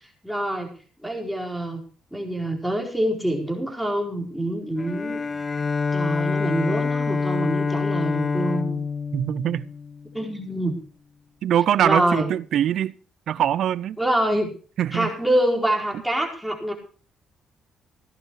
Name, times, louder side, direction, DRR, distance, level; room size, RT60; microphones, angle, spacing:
voice 1, 0.2-0.7 1.0-1.8 2.1-5.2 5.9-8.8 10.1-10.8 11.8-12.3 14.0-14.5 14.9-16.7, right 1 dB, ahead, 4.4 m, -25 dB
Bowed string instrument, 4.8-10.3, left 5 dB, 30° left, 0.8 m, -26 dB
voice 2, 9.1-9.7 11.4-12.9 13.3-14.0 14.8-15.1, right 10 dB, 70° right, 0.6 m, -22 dB
17.0 x 10.5 x 4.7 m
cardioid pair, 90°, 0 cm